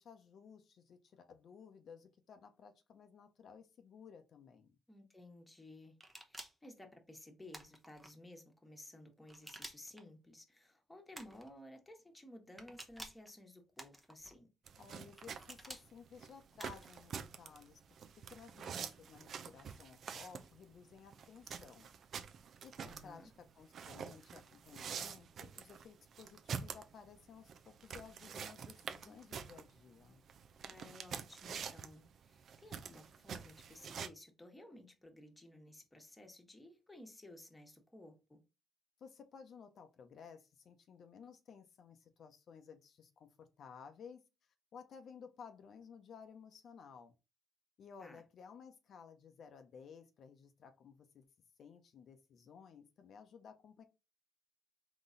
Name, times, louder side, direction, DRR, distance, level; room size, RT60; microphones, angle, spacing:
voice 1, 0.0-4.8 14.8-17.8 18.3-21.9 22.6-30.2 39.0-44.2 44.7-47.1 47.8-51.2 51.6-53.8, left 6 dB, 60° left, 0.7 m, -56 dB
voice 2, 4.9-5.9 6.2-14.5 22.8-23.3 30.6-38.4 48.0-48.2, left 1 dB, 15° left, 1.3 m, -56 dB
sound 1, 6.0-6.7 7.5-8.1 9.3-10.0 11.1-11.5 12.6-13.3 13.8-14.3 15.2-15.8 16.6-17.0, right 1 dB, 5° right, 0.8 m, -51 dB
sound 2, 14.7-34.1, right 7 dB, 60° right, 0.5 m, -47 dB
3.9 x 3.0 x 3.9 m
cardioid pair, 90°, 0 cm